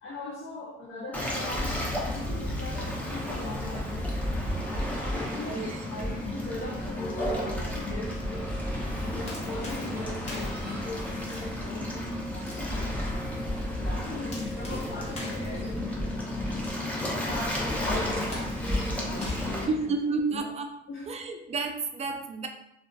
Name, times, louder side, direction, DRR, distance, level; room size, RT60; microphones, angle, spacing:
voice 1, 0.0-4.1 4.6-8.6 9.0-16.3 16.8-20.0 20.3-20.4 20.9-21.3, left 2 dB, 60° left, -3 dB, 0.6 m, -40 dB
Waves surf, 1.1-19.7, left 1 dB, 5° left, 0.6 m, -32 dB
sound 1, 3.4-9.6, right 1 dB, 85° left, 1.1 m, -41 dB
sound 2, 8.9-20.4, left 1 dB, 35° left, 1.0 m, -47 dB
voice 2, 19.7-20.7 21.1-22.5, right 4 dB, 35° right, 4 dB, 0.4 m, -30 dB
2.5 x 2.3 x 2.2 m, 0.79 s
cardioid pair, 90°, 20 cm